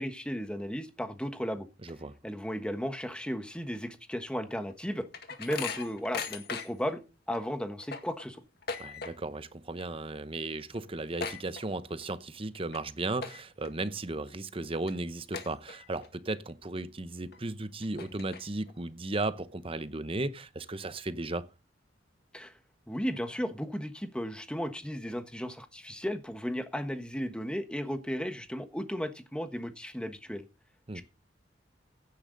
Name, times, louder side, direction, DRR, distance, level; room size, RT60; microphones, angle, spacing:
voice 1, 0.0-1.7 2.2-5.1 5.4-7.0 7.3-8.4 22.3-22.5 22.9-30.4 30.9-31.0, equal, 5° left, 1.3 m, -35 dB
voice 2, 1.8-2.1 8.8-21.4 30.9-31.0, right 2 dB, 30° right, 0.9 m, -35 dB
sound 1, 4.5-6.9 7.3-7.4 7.7-9.4 9.7-10.1 10.4-10.5 10.7-12.1 12.5-12.8 13.2-13.7 14.2-14.3 14.9-15.0 15.3-16.1 16.5-16.6 17.3-17.4 17.8-18.7, left 5 dB, 55° left, 2.0 m, -39 dB
16.0 x 10.0 x 4.0 m
head